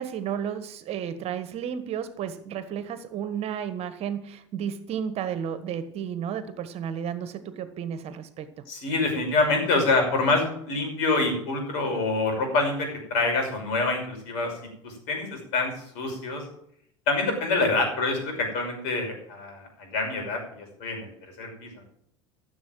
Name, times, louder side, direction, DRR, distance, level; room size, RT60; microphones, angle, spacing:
voice 1, 0.0-8.7, right 8 dB, 45° right, 12 dB, 1.4 m, -32 dB
voice 2, 8.7-14.5 14.8-16.4 17.1-21.1 21.4-21.8, left 3 dB, 60° left, 3 dB, 5.9 m, -26 dB
14.5 x 7.3 x 7.4 m, 0.69 s
hypercardioid pair, 75°, 15 cm